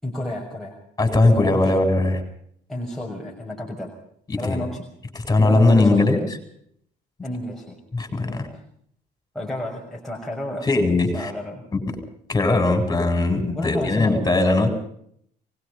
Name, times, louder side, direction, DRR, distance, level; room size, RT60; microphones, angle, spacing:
voice 1, 0.0-0.8 1.2-1.7 2.7-3.9 4.4-4.9 5.4-6.2 7.2-7.8 8.2-8.5 9.3-11.6 13.5-14.2, left 1 dB, ahead, -2 dB, 6.5 m, -31 dB
voice 2, 1.0-2.2 4.3-4.6 5.1-6.2 7.9-8.4 10.6-11.3 11.7-11.8 12.3-14.7, left 2 dB, 20° left, 5 dB, 7.9 m, -19 dB
24.0 x 21.5 x 5.5 m, 0.67 s
cardioid pair, 110°, 17 cm